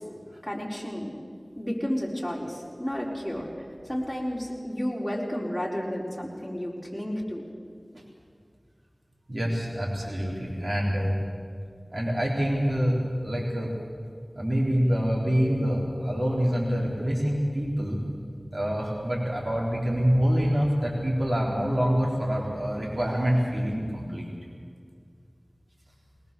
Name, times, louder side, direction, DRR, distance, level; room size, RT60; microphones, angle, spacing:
voice 1, 0.4-1.1 1.6-3.5 3.8-7.4, equal, 5° left, -3 dB, 4.7 m, -31 dB
voice 2, 9.3-11.2 11.9-13.7 14.3-18.0 18.5-24.3, equal, 55° right, -4 dB, 4.1 m, -26 dB
21.5 x 19.0 x 7.0 m, 2.1 s
wide cardioid pair, 40°, 0 cm